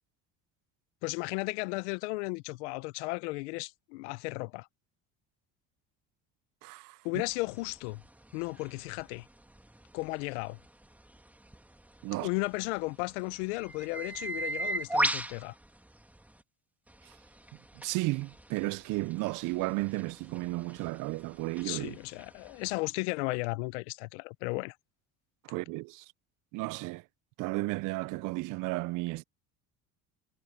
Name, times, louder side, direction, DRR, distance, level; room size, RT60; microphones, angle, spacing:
voice 1, 1.0-4.7 7.0-8.0 8.3-9.3 9.9-10.6 12.2-15.5 21.6-24.8, left 25 dB, 90° left, 0.7 m, -35 dB
voice 2, 6.6-7.0 12.0-12.3 17.8-22.0 25.4-26.0 26.5-27.0 27.4-29.2, right 22 dB, 65° right, 0.6 m, -33 dB
sound 1, 7.2-16.4 16.9-22.7, right 1 dB, 5° right, 1.9 m, -38 dB
supercardioid pair, 90°, 33 cm